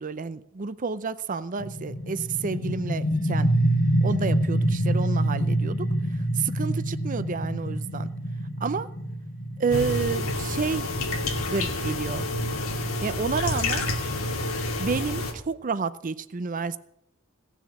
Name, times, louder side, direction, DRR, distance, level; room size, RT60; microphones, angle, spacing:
voice 1, 0.0-3.5 4.0-5.9 6.3-8.1 8.6-8.9 9.6-10.9 11.5-12.2 13.0-13.8 14.8-16.8, right 5 dB, 40° right, 13 dB, 0.6 m, -30 dB
sound 1, 1.6-13.0, right 1 dB, 40° left, 1.3 m, -27 dB
sound 2, 9.7-15.3, left 2 dB, 85° left, 2.5 m, -28 dB
17.0 x 7.2 x 8.5 m, 0.77 s
head